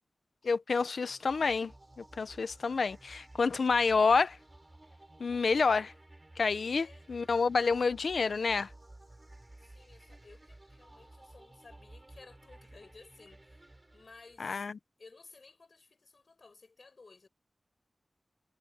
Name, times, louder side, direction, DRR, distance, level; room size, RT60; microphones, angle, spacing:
voice 1, 0.4-1.7 2.0-4.4 5.2-5.9 6.4-8.7 14.4-14.7, left 4 dB, 90° left, 0.8 m, -28 dB
sound 1, 1.0-14.7, right 1 dB, 30° right, 4.6 m, -55 dB
voice 2, 6.7-7.1 9.7-13.7 13.9-14.7 15.0-17.3, left 3 dB, 65° left, 7.9 m, -56 dB
wide cardioid pair, 60°, 0 cm